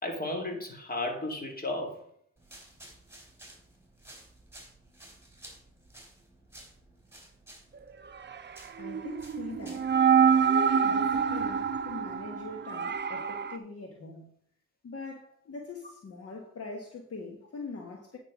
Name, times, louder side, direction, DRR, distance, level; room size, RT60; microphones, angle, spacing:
voice 1, 0.0-2.0, left 2 dB, 30° left, 2.4 m, -34 dB
sound 1, 2.4-10.0, right 1 dB, 10° right, 3.7 m, -53 dB
voice 2, 8.8-9.9 10.4-14.3 14.8-18.2, left 3 dB, 55° left, 1.5 m, -42 dB
sound 2, 8.8-13.6, right 7 dB, 40° right, 0.7 m, -26 dB
9.0 x 4.5 x 6.1 m
cardioid pair, 70°, 29 cm